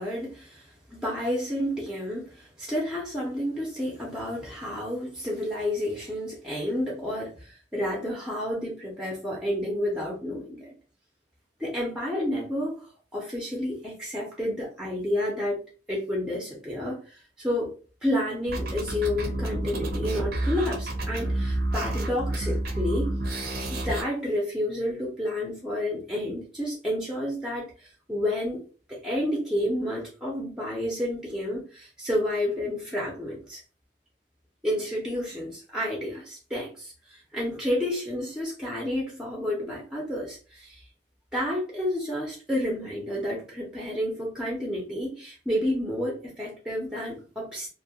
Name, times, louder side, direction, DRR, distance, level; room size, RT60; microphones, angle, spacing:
voice 1, 0.0-10.7 11.6-15.6 15.9-17.7 18.0-23.2 23.7-28.6 28.9-33.6 34.6-40.8 41.3-47.7, left 1 dB, 5° right, -3 dB, 0.6 m, -30 dB
sound 1, 18.5-24.0, right 1 dB, 60° right, 0.6 m, -29 dB
2.2 x 2.1 x 2.7 m, 0.37 s
head